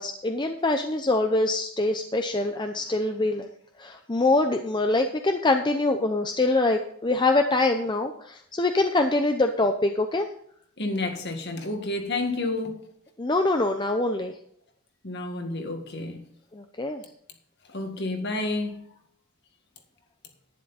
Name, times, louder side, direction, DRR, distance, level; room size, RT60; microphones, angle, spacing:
voice 1, 0.0-3.5 3.8-10.3 13.2-14.4 16.5-17.1, left 2 dB, 20° left, 6 dB, 0.6 m, -24 dB
voice 2, 10.8-12.8 15.0-16.3 17.7-18.8, left 2 dB, 50° left, 5 dB, 1.9 m, -30 dB
11.0 x 10.5 x 4.1 m, 0.67 s
head